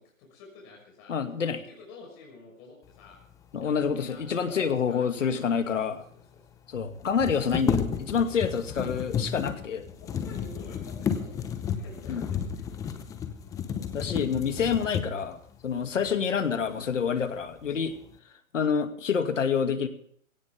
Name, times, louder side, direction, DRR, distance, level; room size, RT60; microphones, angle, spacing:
voice 1, 0.0-1.2 1.6-3.2 3.6-5.6 5.9-6.5 9.9-12.6 17.7-18.0, left 3 dB, 30° left, -1 dB, 6.0 m, -50 dB
voice 2, 1.1-1.6 3.5-6.1 6.7-9.9 12.1-12.2 13.9-15.4 15.6-17.9 18.5-19.9, left 6 dB, 65° left, 7 dB, 2.5 m, -27 dB
sound 1, 5.6-5.7 5.8-5.9 7.0-15.4 16.0-16.2 16.6-17.2 17.6-18.1, left 7 dB, 10° left, 0.8 m, -32 dB
20.0 x 17.0 x 3.5 m, 0.62 s
hypercardioid pair, 140°, 40 cm